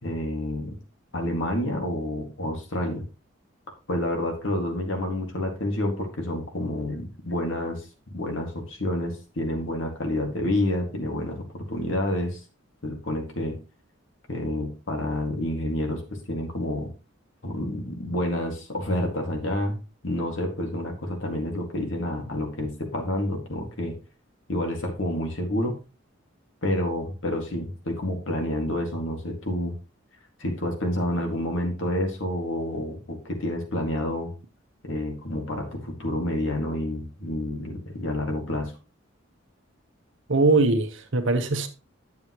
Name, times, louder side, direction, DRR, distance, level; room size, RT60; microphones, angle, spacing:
voice 1, 0.0-0.8 1.1-3.0 3.9-7.9 8.1-12.4 12.8-13.6 14.3-16.0 16.3-16.9 17.4-19.8 20.0-23.9 24.5-25.8 26.6-29.7 30.4-34.3 34.8-38.7, left 1 dB, 75° left, 2.2 m, -29 dB
voice 2, 40.3-41.7, right 3 dB, 70° right, 1.1 m, -21 dB
9.6 x 7.2 x 3.1 m
head